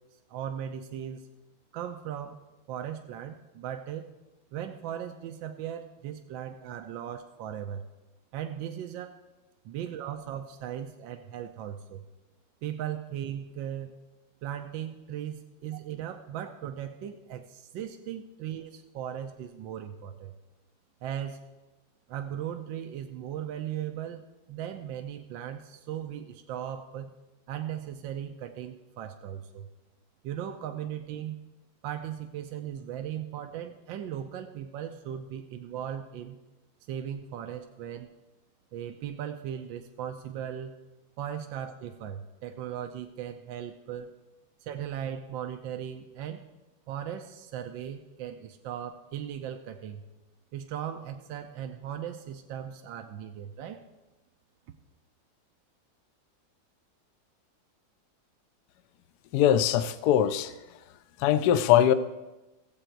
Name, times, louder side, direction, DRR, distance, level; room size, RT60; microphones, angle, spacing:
voice 1, 0.3-1.3 1.7-4.1 4.5-7.8 8.3-9.2 9.6-12.0 12.6-13.9 14.4-20.3 21.0-21.5 22.1-27.1 27.5-29.7 30.2-31.4 31.8-36.4 36.9-38.1 38.7-40.8 41.2-44.1 44.6-46.4 46.9-50.0 50.5-53.8, right 10 dB, 80° right, 6 dB, 1.4 m, -38 dB
voice 2, 59.3-60.5 61.2-61.9, left 10 dB, 70° left, 13 dB, 1.0 m, -22 dB
15.5 x 7.9 x 4.5 m, 1.1 s
omnidirectional pair, 2.1 m